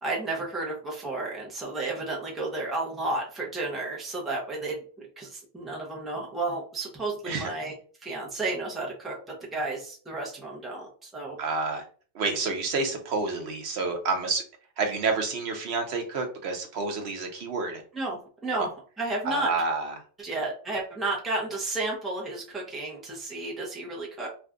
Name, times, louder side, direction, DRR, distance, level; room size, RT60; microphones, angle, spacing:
voice 1, 0.0-7.7 8.0-11.4 17.9-18.7 19.0-19.5 20.2-24.3, right 2 dB, ahead, -3 dB, 0.7 m, -32 dB
voice 2, 11.4-11.8 12.1-14.4 14.8-17.8 18.5-18.7 19.2-19.9, right 4 dB, 75° right, 4 dB, 1.0 m, -29 dB
2.6 x 2.3 x 3.6 m, 0.41 s
omnidirectional pair, 1.1 m